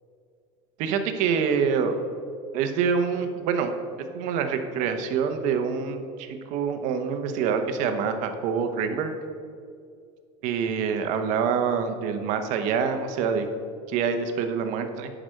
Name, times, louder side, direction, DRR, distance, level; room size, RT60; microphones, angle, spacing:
voice 1, 0.8-2.0 2.5-3.7 4.1-9.1 10.4-13.4 13.9-15.1, right 6 dB, 50° right, 7 dB, 1.0 m, -26 dB
11.0 x 5.1 x 6.4 m, 2.3 s
cardioid pair, 165°, 16 cm